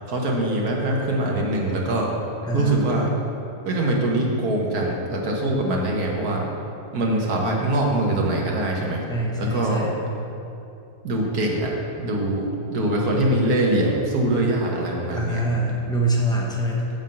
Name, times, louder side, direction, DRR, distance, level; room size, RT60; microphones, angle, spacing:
voice 1, 0.1-2.1 2.5-3.1 3.6-6.4 6.9-9.0 9.4-9.9 11.0-11.7 12.0-15.4, right 1 dB, 75° right, -1 dB, 1.7 m, -23 dB
voice 2, 2.4-3.0 9.1-10.0 15.1-16.9, right 1 dB, 5° left, -3 dB, 1.0 m, -25 dB
7.3 x 5.5 x 7.5 m, 2.7 s
omnidirectional pair, 1.6 m